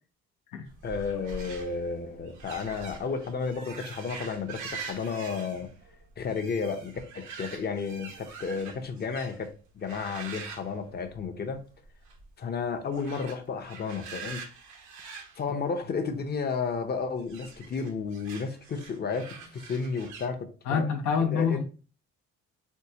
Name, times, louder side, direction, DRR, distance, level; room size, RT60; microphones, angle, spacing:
sound 1, 0.7-9.5 9.8-11.5 11.8-12.2 12.9-16.3 17.2-20.3, right 5 dB, 85° right, 0.9 m, -44 dB
voice 1, 0.8-5.7 6.2-11.6 12.4-14.4 15.4-20.9 21.3-21.6, left 5 dB, 35° left, 0.6 m, -32 dB
voice 2, 20.7-21.6, left 6 dB, 85° left, 0.7 m, -26 dB
4.5 x 2.2 x 2.7 m
cardioid pair, 120°, 29 cm